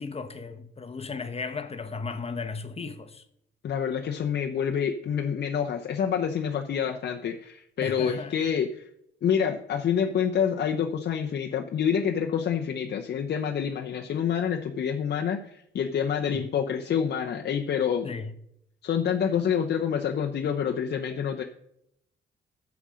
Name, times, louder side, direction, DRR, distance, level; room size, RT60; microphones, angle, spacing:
voice 1, 0.0-3.2 7.8-8.3 16.3-16.5 18.0-18.3, left 4 dB, 30° left, 1.0 m, -35 dB
voice 2, 3.6-8.9 9.2-18.1 18.8-21.4, left 7 dB, 55° left, 0.8 m, -27 dB
10.0 x 7.2 x 6.3 m
cardioid pair, 90°, 20 cm